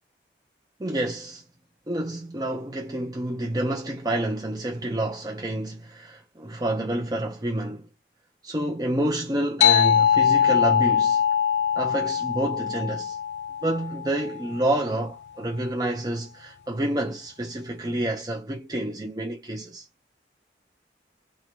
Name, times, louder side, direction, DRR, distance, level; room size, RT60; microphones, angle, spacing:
voice 1, 0.8-1.4 1.9-7.9 8.4-11.2 11.8-13.2 13.6-19.9, right 1 dB, 20° right, 0.5 m, -28 dB
sound 1, 9.6-14.6, left 8 dB, 80° left, 0.5 m, -22 dB
2.4 x 2.2 x 2.9 m
head